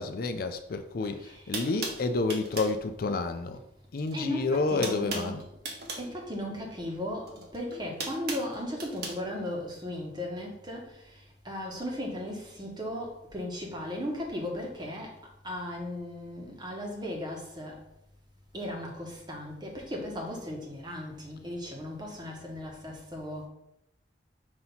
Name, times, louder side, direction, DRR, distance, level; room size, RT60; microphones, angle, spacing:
voice 1, 0.0-3.6 3.9-5.5, left 3 dB, 55° left, 7 dB, 0.4 m, -30 dB
sound 1, 1.0-1.1 1.5-2.8 4.0-4.3 4.5-6.1 7.2-9.2, right 3 dB, 60° right, 1.1 m, -37 dB
voice 2, 1.1-1.5 4.1-5.4 6.0-15.2 15.4-17.8 18.5-23.5, left 1 dB, 25° right, -1 dB, 1.2 m, -36 dB
6.0 x 2.9 x 5.5 m, 0.81 s
head